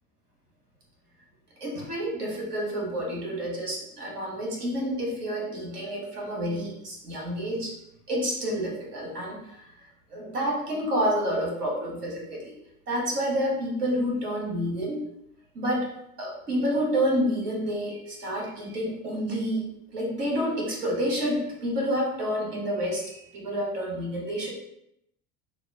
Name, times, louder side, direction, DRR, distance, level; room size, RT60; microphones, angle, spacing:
voice 1, 1.6-7.7 8.1-9.4 10.1-12.5 12.9-15.0 15.5-15.9 16.2-19.6 19.9-24.5, equal, 80° right, -2 dB, 1.1 m, -29 dB
2.9 x 2.2 x 3.4 m, 0.77 s
figure-of-eight pair, 75°, 46 cm